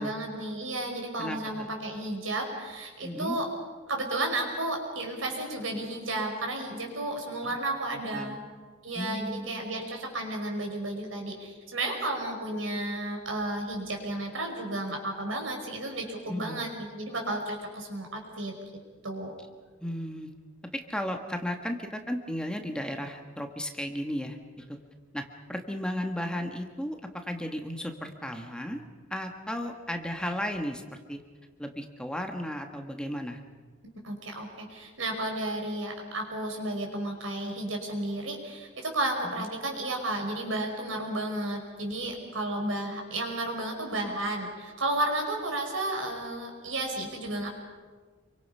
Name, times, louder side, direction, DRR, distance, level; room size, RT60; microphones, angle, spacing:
voice 1, 0.0-3.5 3.9-8.4 8.8-18.6 19.0-19.3 34.0-47.5, right 1 dB, 85° right, 2 dB, 5.3 m, -32 dB
voice 2, 1.2-1.7 3.0-3.4 7.4-7.5 7.9-8.4 8.9-9.7 16.3-16.6 19.8-20.3 20.7-24.8 25.1-28.8 29.1-31.2 31.6-33.4 39.4-39.5, equal, 5° left, 4 dB, 1.6 m, -35 dB
27.5 x 23.5 x 5.6 m, 1.4 s
head